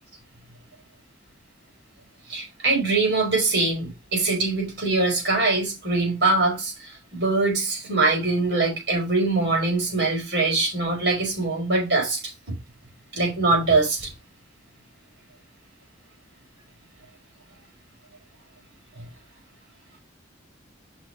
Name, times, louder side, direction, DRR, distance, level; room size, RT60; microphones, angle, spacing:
voice 1, 2.3-6.7 7.1-12.2 12.5-12.6 13.1-14.1, right 3 dB, 60° right, 5.3 m, -23 dB
6.6 x 6.0 x 4.9 m
head